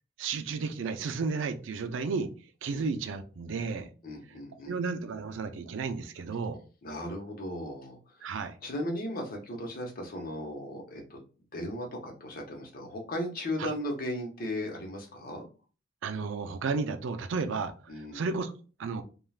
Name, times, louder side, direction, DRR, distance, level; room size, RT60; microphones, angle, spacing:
voice 1, 0.2-2.3 2.6-3.9 4.7-6.6 8.2-8.5 13.6-13.7 16.0-18.5 18.8-19.0, right 4 dB, 80° right, 8 dB, 0.4 m, -33 dB
voice 2, 4.0-4.8 6.8-8.0 8.6-11.2 11.5-15.5 17.9-18.2, left 1 dB, 50° left, 1 dB, 0.8 m, -36 dB
3.3 x 2.3 x 2.3 m, 0.36 s
head